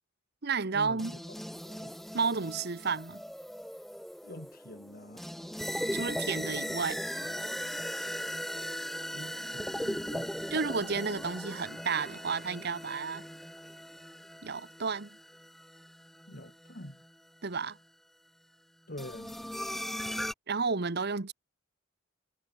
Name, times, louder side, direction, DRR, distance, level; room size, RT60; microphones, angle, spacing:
voice 1, 0.4-1.1 2.1-3.2 5.9-7.0 10.5-13.3 14.4-15.1 17.4-17.8 20.5-21.3, right 5 dB, 55° right, 1.1 m, -32 dB
sound 1, 1.0-17.1 19.0-20.3, equal, ahead, 0.8 m, -38 dB
voice 2, 4.2-5.2 9.1-10.4 16.3-17.0 18.9-19.4, left 1 dB, 50° left, 4.8 m, -45 dB
head